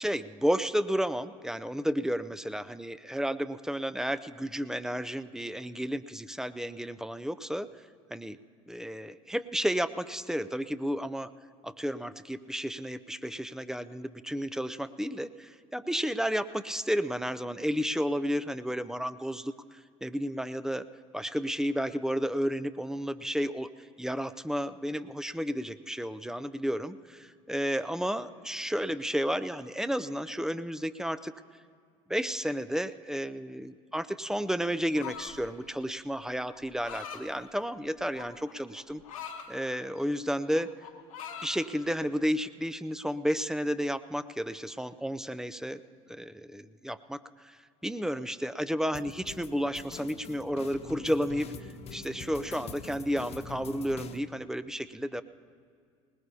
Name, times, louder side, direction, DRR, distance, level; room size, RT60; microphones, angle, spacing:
voice 1, 0.0-7.7 8.1-8.4 8.7-11.3 11.6-20.9 21.1-31.3 32.1-39.0 39.5-40.7 41.4-45.8 46.1-55.2, equal, 5° right, 13 dB, 0.5 m, -32 dB
sound 1, 34.9-35.5 36.5-37.2 38.1-39.5 40.0-40.2 40.5-41.6, left 7 dB, 85° left, 1.7 m, -42 dB
sound 2, 48.9-54.2, left 4 dB, 40° left, 1.2 m, -44 dB
20.5 x 20.0 x 2.8 m, 2.2 s
hypercardioid pair, 70°, 17 cm